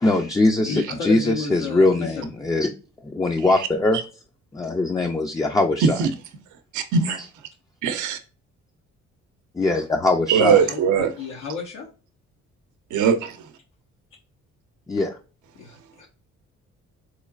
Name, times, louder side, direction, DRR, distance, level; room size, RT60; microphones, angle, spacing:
voice 1, 0.0-2.7 3.0-4.0 4.5-6.1 7.0-7.1 9.5-10.6 14.9-15.2, left 2 dB, 10° left, 0.4 m, -21 dB
voice 2, 0.6-2.3 10.5-11.9 15.6-16.1, left 4 dB, 85° left, 0.9 m, -32 dB
voice 3, 6.7-7.2 7.8-8.2 10.3-11.1 12.9-13.4, right 6 dB, 80° right, 0.6 m, -20 dB
3.7 x 3.1 x 2.3 m
cardioid pair, 90°, 30 cm